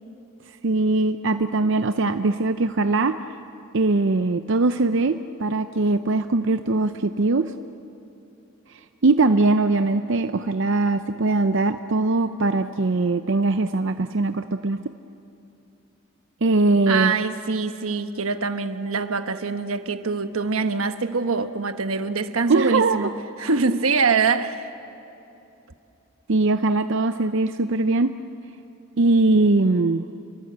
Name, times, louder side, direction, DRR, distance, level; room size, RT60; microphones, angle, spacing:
voice 1, 0.6-3.2 3.7-7.5 8.7-14.8 16.4-17.1 22.5-23.1 26.3-28.1 29.0-30.0, right 3 dB, 60° right, 0.6 m, -21 dB
voice 2, 16.9-23.1 23.4-24.7, right 4 dB, 80° right, 1.2 m, -24 dB
28.5 x 24.0 x 8.0 m
head